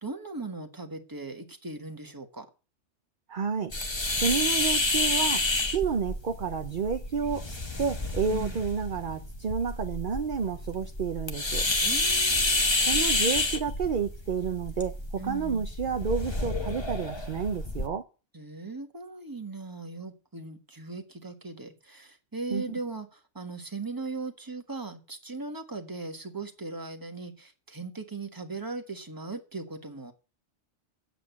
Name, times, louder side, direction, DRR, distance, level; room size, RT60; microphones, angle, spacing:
voice 1, 0.0-2.5 8.3-8.6 11.8-12.6 15.2-15.7 18.3-30.1, right 3 dB, 15° right, 1.4 m, -38 dB
voice 2, 3.3-3.7 4.2-5.4 5.7-11.6 12.8-18.0 22.5-22.8, right 6 dB, 50° right, 0.8 m, -30 dB
sound 1, 3.7-17.9, left 2 dB, 25° left, 1.2 m, -29 dB
8.7 x 7.9 x 8.2 m
omnidirectional pair, 1.2 m